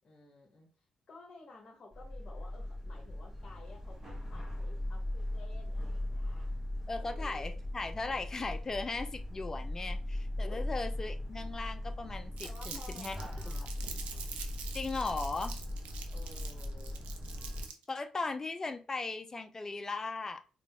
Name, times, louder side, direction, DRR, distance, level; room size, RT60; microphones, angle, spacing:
voice 1, 0.0-6.5 7.0-7.6 10.4-10.6 12.4-14.1 16.1-17.1, left 3 dB, 40° left, -1 dB, 1.1 m, -54 dB
sound 1, 1.9-17.7, left 1 dB, 20° right, 1.4 m, -39 dB
voice 2, 6.9-13.2 13.5-13.6 14.7-15.6 17.9-20.4, left 3 dB, 25° left, 7 dB, 0.5 m, -38 dB
Crumpling crinkling, 12.4-17.9, right 6 dB, 90° right, 0.6 m, -46 dB
3.8 x 2.4 x 3.5 m, 0.35 s
cardioid pair, 100°, 2 cm